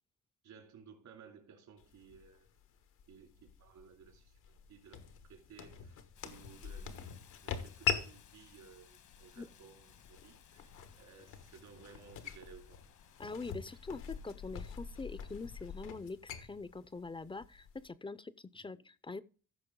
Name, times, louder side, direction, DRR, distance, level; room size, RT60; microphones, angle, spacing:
voice 1, 0.4-2.5 3.1-4.4 4.7-12.8 13.7-14.2 18.6-18.9, right 6 dB, 75° right, 2.8 m, -58 dB
sound 1, 1.8-17.9, left 7 dB, 90° left, 1.4 m, -44 dB
Rain, 6.1-15.9, left 6 dB, 70° left, 1.4 m, -52 dB
voice 2, 13.2-19.2, left 3 dB, 15° left, 0.5 m, -44 dB
14.5 x 5.8 x 3.7 m
cardioid pair, 90°, 30 cm